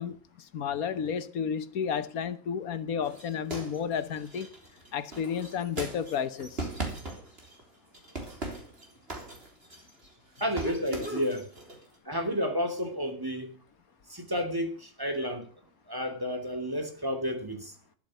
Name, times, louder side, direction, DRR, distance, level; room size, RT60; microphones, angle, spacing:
voice 1, 0.0-4.5 4.9-6.7, left 7 dB, 90° left, 1.5 m, -32 dB
sound 1, 3.0-7.6 7.9-10.1 10.4-11.8, right 2 dB, 45° right, 3.9 m, -39 dB
voice 2, 10.4-11.5 12.0-13.5 14.1-15.5 15.9-17.7, equal, 15° right, 2.8 m, -31 dB
12.5 x 12.5 x 6.4 m
omnidirectional pair, 1.5 m